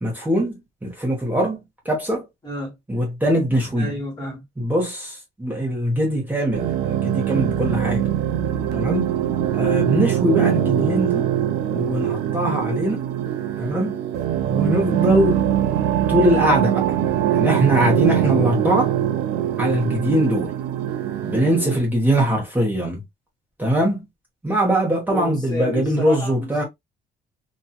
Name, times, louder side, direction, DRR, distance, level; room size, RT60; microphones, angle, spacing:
voice 1, 0.0-2.2 2.9-3.9 4.6-8.1 8.7-9.1 9.5-11.3 11.7-13.0 13.6-14.0 14.5-15.4 16.1-17.0 17.3-18.9 19.6-20.5 21.2-23.0 23.6-24.0 24.4-26.6, right 1 dB, 10° right, 1.0 m, -22 dB
voice 2, 2.4-2.8 3.8-4.4 25.1-26.6, equal, 25° left, 1.5 m, -30 dB
sound 1, 6.5-21.8, right 10 dB, 80° right, 0.5 m, -22 dB
2.9 x 2.5 x 2.3 m
cardioid pair, 110°, 17 cm